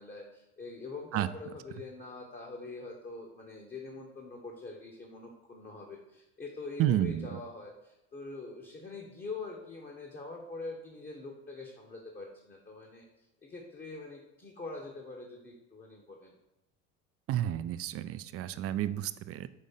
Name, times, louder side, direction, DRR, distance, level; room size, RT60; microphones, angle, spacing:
voice 1, 0.0-16.3, left 3 dB, 25° left, 0 dB, 1.2 m, -44 dB
voice 2, 6.8-7.3 17.3-19.5, right 12 dB, 40° right, 14 dB, 0.4 m, -30 dB
5.4 x 3.6 x 5.5 m, 0.93 s
hypercardioid pair, 80°, 35 cm